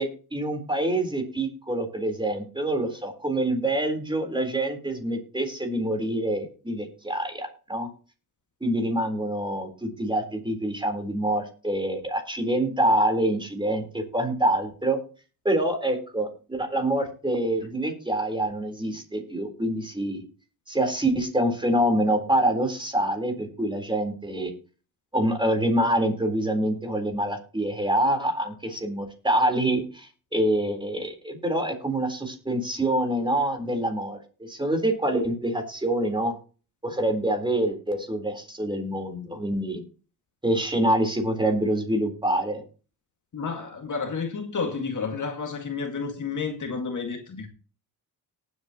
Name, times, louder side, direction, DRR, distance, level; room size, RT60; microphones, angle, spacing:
voice 1, 0.0-7.9 8.6-15.0 15.4-20.2 20.7-24.5 25.1-36.3 36.8-39.8 40.4-42.6, right 1 dB, 10° right, 3.9 m, -26 dB
voice 2, 43.3-47.5, left 5 dB, 50° left, 2.0 m, -31 dB
18.5 x 8.3 x 3.0 m
cardioid pair, 90°, 38 cm